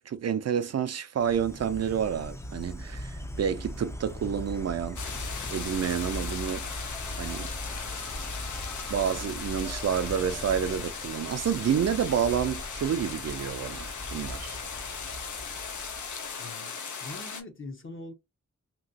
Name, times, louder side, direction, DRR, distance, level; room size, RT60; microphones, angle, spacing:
voice 1, 0.1-6.7 7.2-7.5 8.9-14.6, right 8 dB, 60° right, 0.4 m, -29 dB
Insect, 1.2-16.3, equal, 10° left, 0.4 m, -40 dB
sound 1, 5.0-17.4, left 5 dB, 85° left, 0.7 m, -38 dB
voice 2, 16.4-18.1, left 2 dB, 45° left, 0.8 m, -43 dB
3.0 x 2.7 x 2.7 m
wide cardioid pair, 90°, 29 cm